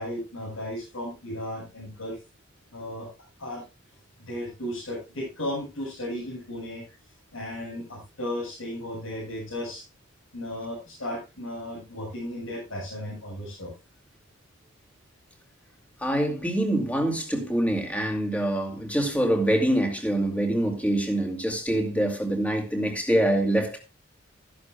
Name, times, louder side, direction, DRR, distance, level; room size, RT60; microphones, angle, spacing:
voice 1, 0.0-2.2 2.7-3.1 3.4-3.6 4.2-7.0 7.3-9.8 10.3-13.7, left 1 dB, 90° left, 6.6 m, -35 dB
voice 2, 16.0-23.8, right 1 dB, 5° left, 2.4 m, -25 dB
14.0 x 11.5 x 2.3 m
head